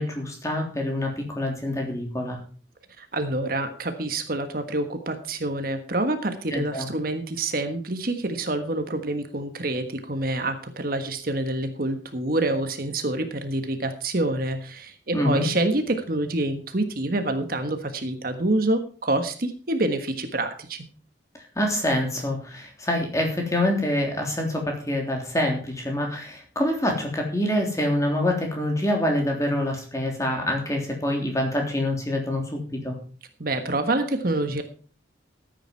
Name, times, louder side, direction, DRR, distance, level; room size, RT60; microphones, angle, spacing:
voice 1, 0.0-2.4 6.5-6.9 15.1-15.5 21.5-33.0, left 1 dB, 15° left, 1 dB, 3.4 m, -26 dB
voice 2, 3.0-20.9 33.4-34.6, right 2 dB, 50° right, 7 dB, 1.4 m, -27 dB
14.0 x 9.1 x 4.6 m, 0.40 s
head